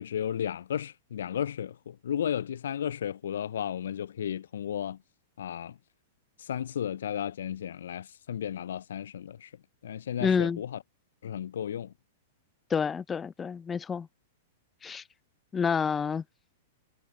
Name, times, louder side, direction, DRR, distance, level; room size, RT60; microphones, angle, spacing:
voice 1, 0.0-5.0 5.4-5.8 6.4-9.5 9.8-10.8 11.2-11.9, left 9 dB, 75° left, 0.3 m, -34 dB
voice 2, 10.2-10.6 12.7-14.1 14.8-15.0 15.5-16.2, left 6 dB, 20° left, 0.5 m, -28 dB
hypercardioid pair, 115°, 0 cm